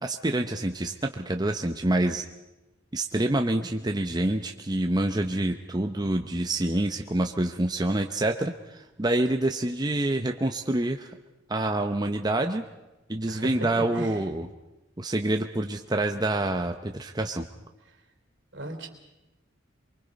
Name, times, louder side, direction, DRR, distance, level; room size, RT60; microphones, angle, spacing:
voice 1, 0.0-2.3 2.9-11.1 11.5-12.6 13.1-14.5 15.0-17.5, right 1 dB, 20° right, 4 dB, 0.9 m, -27 dB
voice 2, 18.5-18.9, right 1 dB, 70° right, 4 dB, 3.5 m, -36 dB
24.0 x 24.0 x 5.3 m, 1.0 s
head